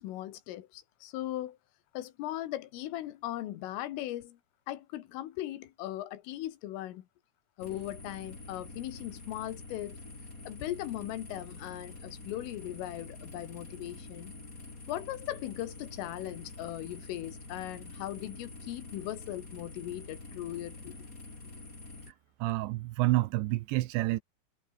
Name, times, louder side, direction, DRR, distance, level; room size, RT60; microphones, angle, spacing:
voice 1, 0.0-1.6 1.9-4.4 4.7-7.1 7.6-10.0 10.5-14.3 14.9-21.0, left 14 dB, 85° left, 4.2 m, -38 dB
sound 1, 7.6-22.1, left 3 dB, 20° left, 4.1 m, -47 dB
voice 2, 22.4-24.2, right 18 dB, 80° right, 2.8 m, -29 dB
omnidirectional pair, 5.7 m